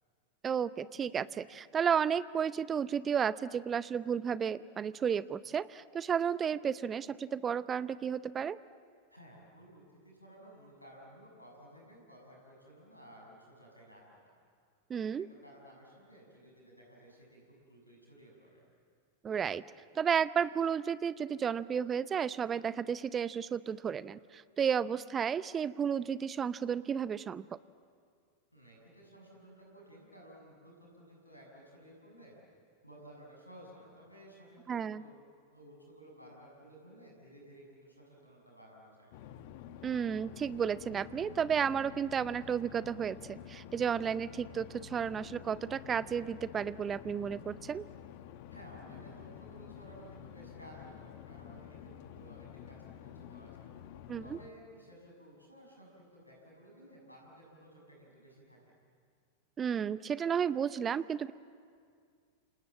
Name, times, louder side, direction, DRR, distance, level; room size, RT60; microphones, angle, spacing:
voice 1, 0.4-8.6 14.9-15.3 19.2-19.6 19.9-27.4 34.7-35.0 39.8-47.9 54.1-54.4 59.6-61.3, right 7 dB, 20° right, 18 dB, 0.6 m, -32 dB
voice 2, 9.1-14.3 15.0-18.6 28.5-32.4 32.8-35.2 35.5-39.1 48.5-53.7 54.2-58.6, right 1 dB, 90° left, -1 dB, 6.7 m, -55 dB
sound 1, 39.1-54.5, left 9 dB, 50° left, 1.3 m, -50 dB
29.0 x 27.0 x 7.4 m, 2.1 s
figure-of-eight pair, 90°, 0 cm